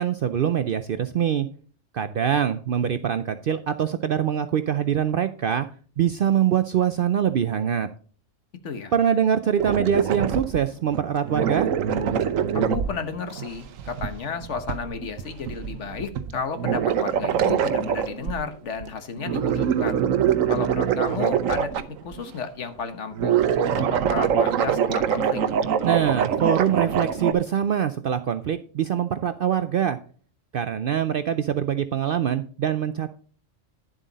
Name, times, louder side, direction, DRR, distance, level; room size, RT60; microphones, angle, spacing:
voice 1, 0.0-1.5 1.9-5.7 6.0-7.9 8.9-11.7 25.8-30.0 30.5-33.1, right 9 dB, 60° right, 11 dB, 0.6 m, -24 dB
sound 1, 9.6-10.6 10.9-11.0 11.2-18.4 18.7-18.9 19.2-22.3 23.1-27.3, right 8 dB, 85° right, 1.1 m, -24 dB
voice 2, 12.5-20.1 20.5-21.7 22.0-25.4, left 5 dB, 65° left, 9 dB, 1.4 m, -33 dB
10.5 x 7.4 x 4.0 m, 0.42 s
omnidirectional pair, 1.3 m